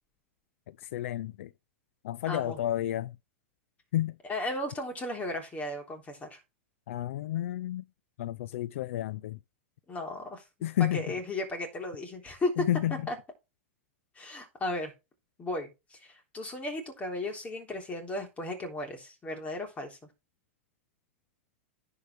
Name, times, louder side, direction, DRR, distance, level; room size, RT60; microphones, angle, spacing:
voice 1, 0.7-1.5 2.0-3.2 3.9-4.2 6.9-7.8 8.2-9.4 10.6-11.0 12.6-13.0, left 13 dB, 75° left, 0.4 m, -31 dB
voice 2, 2.3-2.6 4.2-6.4 9.9-10.4 10.9-12.7 13.1-13.2 14.2-14.9 15.4-20.0, left 1 dB, 20° left, 3.5 m, -35 dB
10.5 x 4.9 x 4.5 m
hypercardioid pair, 125°, 7 cm